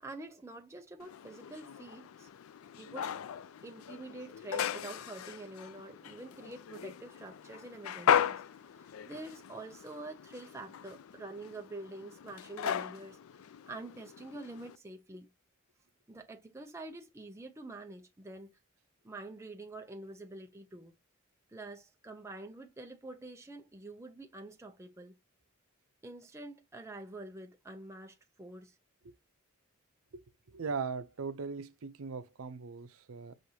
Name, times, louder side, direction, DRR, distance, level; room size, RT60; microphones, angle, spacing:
voice 1, 0.0-2.3 2.8-3.1 3.6-8.4 8.7-13.2 13.7-15.3 16.1-18.5 19.0-21.0 21.5-25.2 26.0-28.8, right 2 dB, 15° right, 0.5 m, -47 dB
sound 1, 1.0-14.8, left 8 dB, 85° left, 0.4 m, -37 dB
voice 2, 30.5-33.3, right 5 dB, 90° right, 0.6 m, -39 dB
6.3 x 2.5 x 2.8 m
head